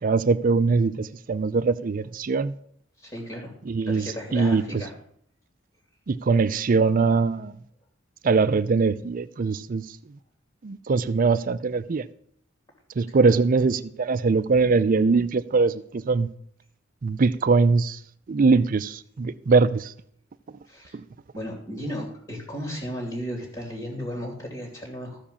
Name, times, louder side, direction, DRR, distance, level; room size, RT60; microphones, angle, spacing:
voice 1, 0.0-2.5 3.7-4.6 6.1-7.5 8.2-9.8 10.6-12.0 13.0-16.3 17.0-18.0 18.3-19.9 20.9-21.0, right 4 dB, 45° right, 0.4 m, -22 dB
voice 2, 3.0-3.5 3.9-4.9 13.2-13.4 20.7-21.0 21.3-25.2, equal, 25° left, 2.8 m, -35 dB
13.5 x 5.0 x 7.0 m
head